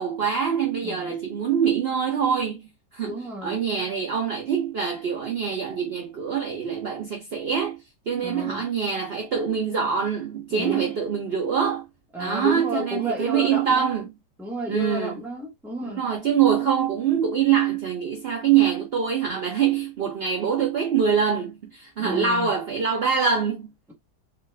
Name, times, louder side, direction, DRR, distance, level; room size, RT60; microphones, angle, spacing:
voice 1, 0.0-7.8 8.1-11.8 12.2-14.1 14.7-15.2 15.8-23.7, right 7 dB, 75° right, 0.5 m, -24 dB
voice 2, 0.8-1.2 3.0-3.6 8.2-8.6 10.5-11.0 12.1-14.0 14.4-16.0 22.0-22.5, left 1 dB, ahead, 0.7 m, -32 dB
2.9 x 2.3 x 3.2 m
omnidirectional pair, 1.9 m